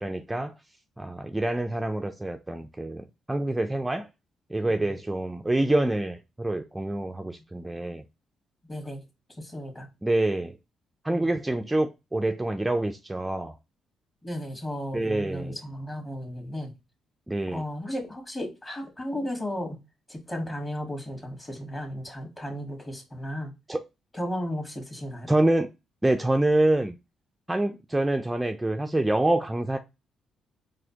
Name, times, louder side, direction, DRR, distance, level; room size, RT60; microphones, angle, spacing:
voice 1, 0.0-0.5 1.0-4.1 4.5-8.0 10.0-10.6 11.0-13.6 14.9-15.6 17.3-17.6 23.7-23.8 25.3-25.7 26.0-26.9 27.5-29.8, right 1 dB, 10° right, 0.3 m, -26 dB
voice 2, 8.7-9.0 9.4-9.9 11.1-11.3 14.2-16.7 17.5-19.8 20.1-23.5 24.1-25.3, equal, 20° left, 1.5 m, -34 dB
4.1 x 2.6 x 2.8 m
cardioid pair, 90°, 0 cm